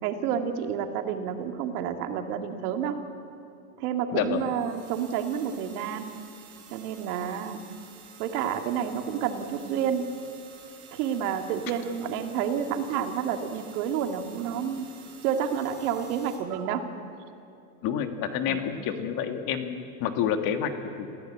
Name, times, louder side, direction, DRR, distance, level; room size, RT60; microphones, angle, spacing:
voice 1, 0.0-3.0 3.8-6.1 6.7-7.6 8.2-10.1 10.9-14.8 15.2-16.9 18.5-18.6, right 8 dB, 80° right, 5 dB, 2.3 m, -29 dB
voice 2, 4.1-4.5 17.8-20.7 21.0-21.1, left 8 dB, 50° left, 6 dB, 1.8 m, -28 dB
sound 1, 4.3-16.4, right 7 dB, 45° right, 5.3 m, -51 dB
27.0 x 16.0 x 8.6 m, 2.6 s
supercardioid pair, 150°, 44 cm